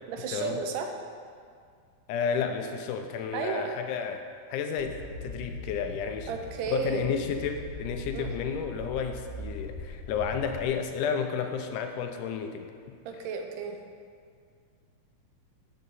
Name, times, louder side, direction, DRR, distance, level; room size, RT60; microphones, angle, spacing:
voice 1, 0.1-0.9 3.3-3.7 6.3-7.1 8.1-8.4 13.0-13.8, right 6 dB, 85° right, 4 dB, 2.3 m, -33 dB
voice 2, 2.1-4.2 4.5-6.3 6.7-12.7, left 6 dB, 80° left, 6 dB, 2.2 m, -31 dB
sound 1, 4.8-10.6, left 1 dB, 55° left, 1.5 m, -40 dB
10.5 x 7.5 x 4.1 m, 2.1 s
omnidirectional pair, 3.7 m